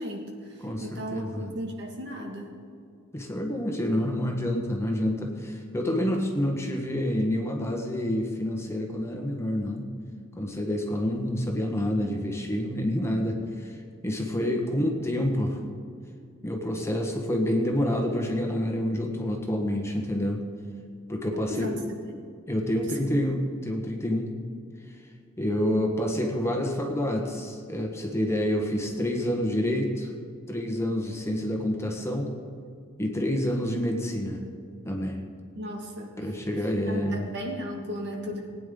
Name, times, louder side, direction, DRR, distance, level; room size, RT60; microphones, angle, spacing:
voice 1, 0.0-2.5 21.3-22.3 22.8-23.2 35.6-38.5, equal, 55° right, 1 dB, 2.0 m, -36 dB
voice 2, 0.6-1.5 3.1-9.8 10.4-15.6 16.4-20.4 21.1-21.7 22.5-24.3 24.9-25.0 25.4-30.1 30.5-32.3 33.0-34.4 34.8-35.2 36.2-37.3, left 1 dB, 15° left, 1 dB, 1.4 m, -28 dB
19.5 x 9.7 x 3.9 m, 2.3 s
head